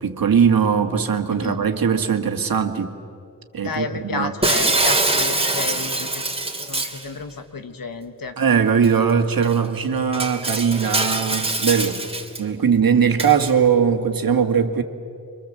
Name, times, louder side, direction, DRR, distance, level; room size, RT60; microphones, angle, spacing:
voice 1, 0.0-2.9 3.5-4.3 8.4-12.0 12.4-14.8, right 7 dB, 80° right, 6 dB, 1.9 m, -20 dB
voice 2, 3.6-6.2 6.7-8.4, left 4 dB, 75° left, 7 dB, 1.9 m, -31 dB
Shatter, 4.4-7.0 8.8-8.9 9.4-9.5 10.1-12.4 13.2-13.5, right 2 dB, 15° right, 3.2 m, -23 dB
29.0 x 24.5 x 7.6 m, 2.4 s
wide cardioid pair, 70°, 35 cm